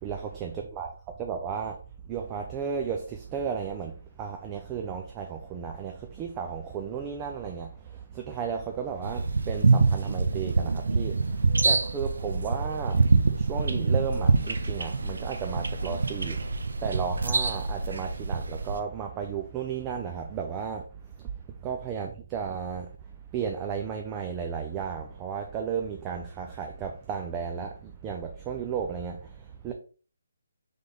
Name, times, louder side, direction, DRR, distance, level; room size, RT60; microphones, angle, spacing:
voice 1, 0.0-1.8 2.0-21.2 21.6-29.7, right 7 dB, 20° right, 0.4 m, -34 dB
sound 1, 9.0-18.8, right 4 dB, 75° right, 0.6 m, -25 dB
3.4 x 3.3 x 3.9 m
hypercardioid pair, 155°, 0 cm